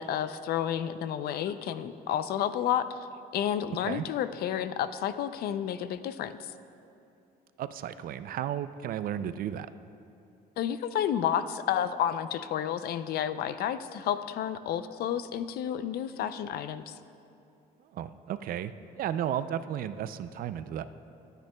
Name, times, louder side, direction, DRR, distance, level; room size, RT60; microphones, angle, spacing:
voice 1, 0.0-3.0 3.3-6.5 10.6-16.9, left 10 dB, 65° left, 12 dB, 0.5 m, -31 dB
voice 2, 3.7-4.0 7.6-9.7 17.8-20.8, right 10 dB, 60° right, 13 dB, 0.4 m, -34 dB
25.0 x 9.0 x 2.3 m, 2.8 s
cardioid pair, 110°, 17 cm